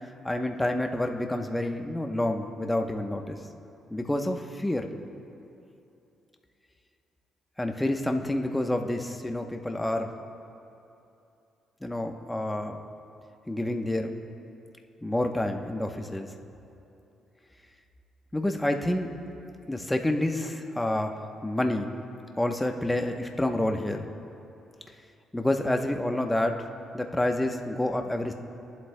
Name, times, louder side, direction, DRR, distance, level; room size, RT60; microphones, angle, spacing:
voice 1, 0.2-3.4 3.9-4.9 7.6-10.1 11.8-12.8 13.5-14.2 15.0-16.3 18.3-19.1 19.7-21.2 21.4-21.9 22.4-24.1 25.3-26.6 26.9-28.3, left 1 dB, 10° left, 4 dB, 0.9 m, -28 dB
20.5 x 11.5 x 2.2 m, 2.8 s
cardioid pair, 90°, 0 cm